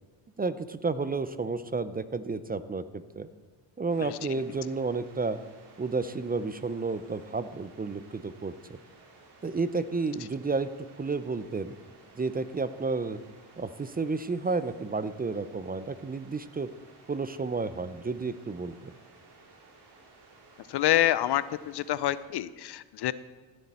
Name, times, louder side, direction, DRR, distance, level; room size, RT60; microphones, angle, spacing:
voice 1, 0.4-3.3 3.8-5.4 5.8-8.8 9.4-10.7 11.0-11.7 12.2-13.2 13.6-16.7 17.1-19.0, right 4 dB, 20° right, 13 dB, 0.5 m, -31 dB
sound 1, 3.9-22.2, right 3 dB, 60° right, 3.4 m, -56 dB
voice 2, 20.7-23.1, left 13 dB, 60° left, 17 dB, 0.6 m, -27 dB
16.5 x 7.8 x 4.3 m, 1.4 s
cardioid pair, 80°, 46 cm